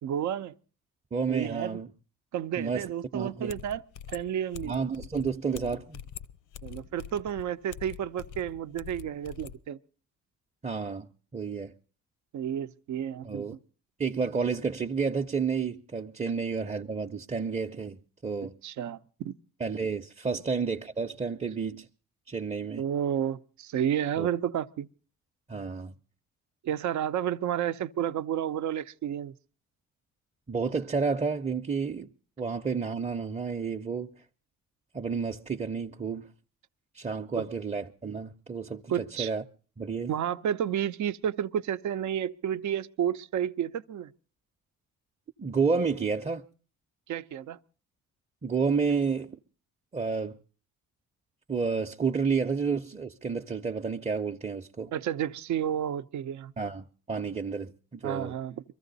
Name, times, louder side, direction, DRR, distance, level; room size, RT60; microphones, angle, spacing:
voice 1, 0.0-0.5 1.3-1.8 2.3-3.8 4.1-4.8 6.6-9.8 12.3-13.6 18.6-19.3 22.8-24.9 26.6-29.3 37.4-37.5 38.9-39.3 40.1-44.1 47.1-47.6 54.9-56.5 58.0-58.6, right 9 dB, 70° right, 0.8 m, -31 dB
voice 2, 1.1-1.9 2.6-2.8 3.1-3.5 4.6-6.0 10.6-11.1 11.3-11.7 13.2-13.5 14.0-18.5 19.6-21.9 22.3-22.8 24.2-24.3 25.5-25.9 30.5-32.1 32.4-34.1 34.9-36.3 36.9-38.8 39.2-39.4 39.8-40.1 45.4-46.5 48.4-49.4 49.9-50.4 51.5-54.9 56.6-58.3, right 5 dB, 20° right, 0.7 m, -30 dB
sound 1, 3.5-9.6, left 9 dB, 85° left, 0.7 m, -44 dB
23.0 x 14.5 x 4.0 m
cardioid pair, 90°, 30 cm